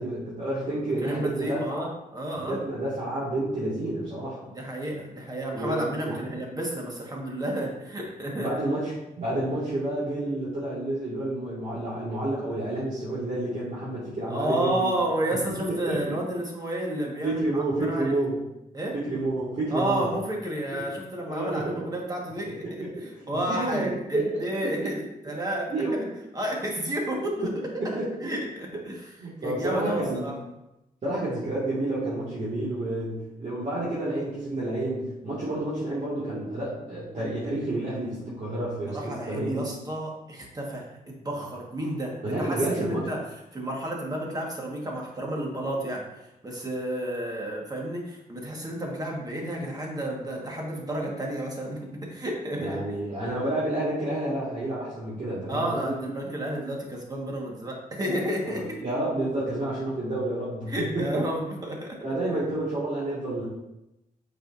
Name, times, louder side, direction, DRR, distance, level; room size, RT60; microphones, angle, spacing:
voice 1, 0.0-1.9 2.5-4.4 5.5-6.2 8.4-14.9 15.7-16.2 17.2-18.4 18.9-20.0 20.7-20.8 21.3-21.8 22.6-23.1 23.3-24.9 25.7-26.1 27.4-27.5 27.8-28.1 29.2-30.4 31.0-39.7 42.2-43.1 52.6-56.0 58.4-61.2 62.0-63.4, right 1 dB, 55° right, -9 dB, 2.0 m, -30 dB
voice 2, 0.7-2.6 4.5-8.5 14.3-18.1 18.7-18.9 19.7-26.0 26.3-27.5 27.7-27.8 28.2-29.1 29.4-30.3 38.9-43.2 43.5-46.0 46.4-52.8 55.5-58.8 60.7-62.0, right 1 dB, 25° right, -1 dB, 1.6 m, -31 dB
8.1 x 4.9 x 2.6 m, 0.92 s
wide cardioid pair, 105°, 15 cm